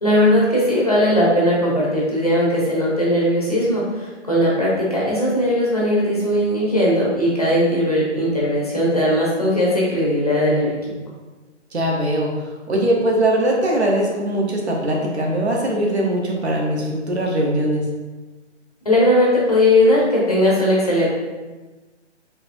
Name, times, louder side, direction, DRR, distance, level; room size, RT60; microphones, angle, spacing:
voice 1, 0.0-10.7 18.8-21.1, left 1 dB, 35° left, -6 dB, 0.6 m, -18 dB
voice 2, 11.7-17.8, right 1 dB, 65° right, -1 dB, 0.9 m, -21 dB
4.1 x 2.7 x 2.5 m, 1.2 s
hypercardioid pair, 175°, 36 cm